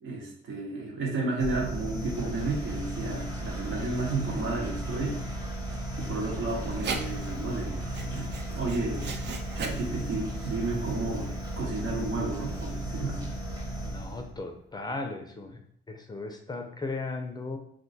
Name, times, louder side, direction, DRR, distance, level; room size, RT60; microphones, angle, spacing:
voice 1, 0.0-5.2 6.0-9.1 9.5-11.3 11.6-13.3, right 3 dB, 75° right, -2 dB, 1.0 m, -32 dB
sound 1, 1.4-14.4, right 1 dB, 20° right, 0.9 m, -35 dB
Writing, 6.5-12.8, right 4 dB, 60° right, 0.5 m, -41 dB
voice 2, 13.8-15.6 15.9-17.6, left 3 dB, 20° left, 4 dB, 0.5 m, -36 dB
2.5 x 2.2 x 4.0 m, 0.67 s
cardioid pair, 90°, 20 cm